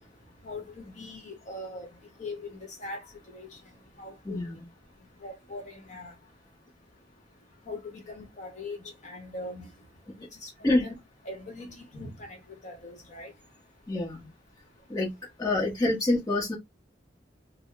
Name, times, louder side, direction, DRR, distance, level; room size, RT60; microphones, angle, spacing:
voice 1, 0.4-1.9 2.2-3.5 4.0-4.4 5.2-6.1 7.7-8.8 9.0-9.7 10.4-10.9 11.2-13.3, left 2 dB, 40° left, 1.2 m, -41 dB
voice 2, 4.2-4.7 10.6-10.9 13.9-14.3 14.9-15.1 15.4-16.6, left 2 dB, 20° left, 1.1 m, -26 dB
3.6 x 2.2 x 3.2 m
head